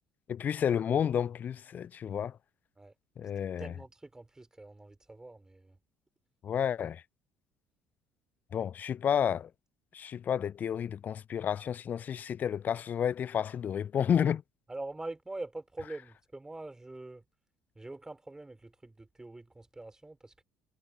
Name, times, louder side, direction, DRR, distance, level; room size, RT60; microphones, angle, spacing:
voice 1, 0.3-2.4 3.2-3.7 6.4-7.0 8.5-9.5 9.9-14.4, left 8 dB, 40° left, 0.6 m, -31 dB
voice 2, 3.6-5.8 14.7-17.2 17.8-20.4, right 2 dB, 15° right, 4.5 m, -44 dB
figure-of-eight pair, 55°, 5 cm